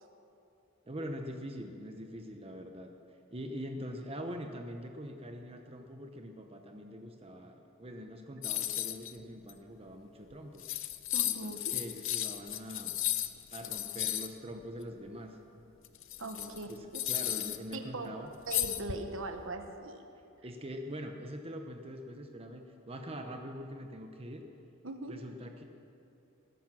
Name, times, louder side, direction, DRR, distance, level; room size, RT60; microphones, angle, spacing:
voice 1, 0.9-2.9 3.3-10.6 11.2-12.9 13.5-15.4 16.2-18.3 20.4-24.4 25.1-25.6, equal, 30° right, 4 dB, 0.9 m, -43 dB
sound 1, 8.4-9.1 9.5-9.6 10.3-10.4 10.6-14.3 15.8-17.8 18.5-19.3, left 13 dB, 65° left, 0.7 m, -34 dB
voice 2, 11.1-11.6 16.2-17.0 17.7-18.1 18.5-20.0 24.8-25.2, right 2 dB, 70° right, 6 dB, 1.2 m, -40 dB
19.5 x 10.5 x 6.3 m, 2.8 s
head